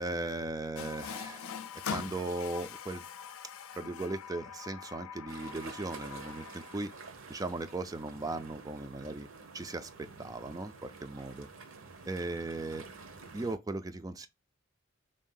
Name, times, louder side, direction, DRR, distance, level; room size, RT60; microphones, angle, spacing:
voice 1, 0.0-3.0 3.7-6.9 7.3-9.3 9.5-9.9 10.2-11.5 12.1-12.9 13.3-14.3, right 2 dB, 15° right, 0.3 m, -37 dB
Water tap faucet, 0.8-7.1, left 7 dB, 80° left, 0.5 m, -43 dB
sound 1, 5.3-13.6, right 4 dB, 65° right, 0.8 m, -50 dB
4.0 x 2.6 x 3.7 m
head